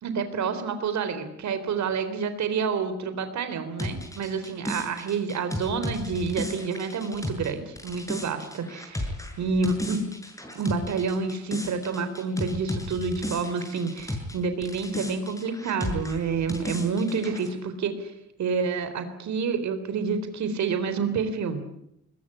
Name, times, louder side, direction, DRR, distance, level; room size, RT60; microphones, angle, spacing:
voice 1, 0.0-9.1 9.4-10.0 10.6-18.1 18.4-21.6, right 5 dB, 65° right, 10 dB, 3.8 m, -28 dB
sound 1, 3.8-14.4 14.6-17.5, left 1 dB, 10° left, 7.5 m, -34 dB
21.5 x 20.5 x 10.0 m, 0.77 s
cardioid pair, 90°, 30 cm